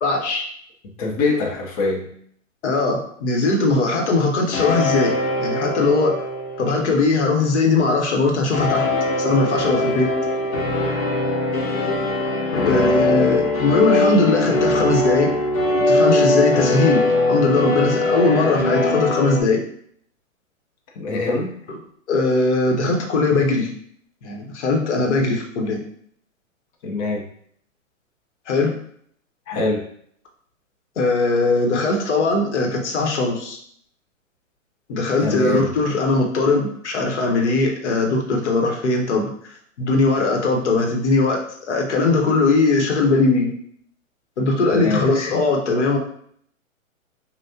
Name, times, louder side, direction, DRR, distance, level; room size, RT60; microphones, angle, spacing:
voice 1, 0.0-0.4 2.6-5.1 5.4-6.2 6.6-8.9 9.2-10.1 12.6-15.3 15.8-19.6 22.1-23.7 24.2-25.8 28.5-28.8 31.0-33.6 34.9-39.3 39.8-41.4 41.7-43.5 44.4-46.0, left 3 dB, 55° left, 1 dB, 1.2 m, -20 dB
voice 2, 1.0-2.1 12.6-12.9 21.0-21.5 26.8-27.2 29.5-29.9 35.2-35.7 44.7-45.0, left 3 dB, 25° left, 0 dB, 0.9 m, -23 dB
sound 1, 4.5-7.7 8.5-19.4, left 2 dB, 85° left, 1.3 m, -21 dB
5.7 x 2.5 x 2.8 m, 0.64 s
hypercardioid pair, 145°, 41 cm